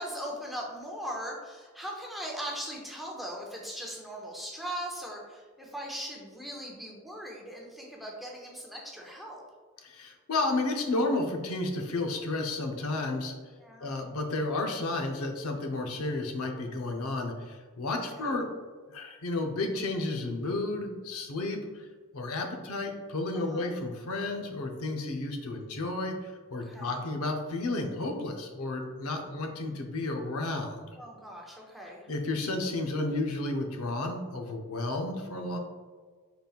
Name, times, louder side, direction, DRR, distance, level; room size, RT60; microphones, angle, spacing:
voice 1, 0.0-9.4 13.6-14.0 18.1-18.3 23.3-23.7 26.6-27.0 30.9-32.1, equal, ahead, -2 dB, 0.6 m, -39 dB
voice 2, 9.8-13.3 13.8-18.5 18.9-21.9 22.1-30.8 32.1-35.6, left 2 dB, 80° left, 3 dB, 0.7 m, -32 dB
5.3 x 3.9 x 2.4 m, 1.5 s
head